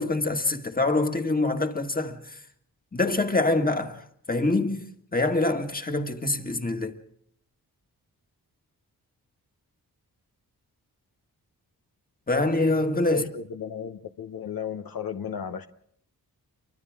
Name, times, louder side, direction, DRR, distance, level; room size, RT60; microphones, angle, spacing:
voice 1, 0.0-2.4 2.9-4.9 5.1-7.0 12.3-13.2, left 2 dB, 25° left, 1.9 m, -25 dB
voice 2, 13.1-15.7, left 7 dB, 70° left, 1.0 m, -34 dB
29.0 x 24.0 x 3.7 m
cardioid pair, 70°, 37 cm